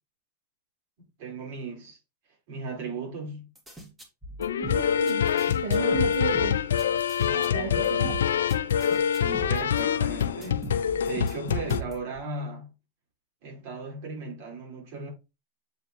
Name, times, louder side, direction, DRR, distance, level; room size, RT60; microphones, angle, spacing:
voice 1, 1.2-2.0 2.5-3.5 7.2-7.9 9.1-12.7 13.4-15.1, right 3 dB, 60° right, 4.7 m, -37 dB
sound 1, 3.5-12.2, right 2 dB, 10° right, 2.3 m, -38 dB
sound 2, 4.4-11.8, left 8 dB, 90° left, 0.4 m, -25 dB
voice 2, 4.6-6.6 7.5-8.2, right 5 dB, 75° right, 1.3 m, -33 dB
7.7 x 5.0 x 3.1 m
hypercardioid pair, 120°, 0 cm